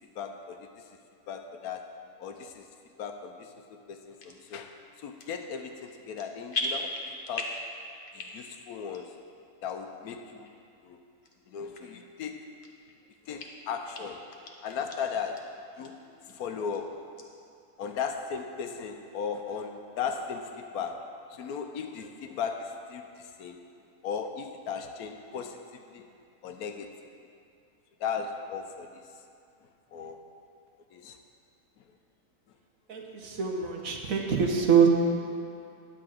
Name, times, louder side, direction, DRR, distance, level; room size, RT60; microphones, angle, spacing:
voice 1, 0.2-0.6 1.3-1.9 2.2-2.6 3.0-4.8 5.0-7.6 8.1-9.1 9.6-10.5 10.8-11.0 11.5-12.4 13.3-14.3 14.6-15.5 15.8-15.9 16.3-16.9 17.8-23.6 24.0-26.1 26.4-26.9 28.0-28.9 29.9-30.2 30.9-31.2, left 6 dB, 75° left, 5 dB, 1.1 m, -36 dB
sound 1, 4.2-4.4 5.0-5.5 5.8-6.2 6.5-7.7 8.0-8.6 8.9-9.0 9.7-9.8 10.4-10.5 11.2-11.3 11.7-11.8 12.3-13.0 13.4-13.5 13.9-14.0 14.3-15.0 15.4-15.5 15.8-15.9 16.3-16.8 17.2-17.3, left 2 dB, 45° left, 0.9 m, -37 dB
voice 2, 32.9-34.9, right 7 dB, 65° right, 1 dB, 1.3 m, -24 dB
10.0 x 4.7 x 7.5 m, 2.5 s
omnidirectional pair, 1.6 m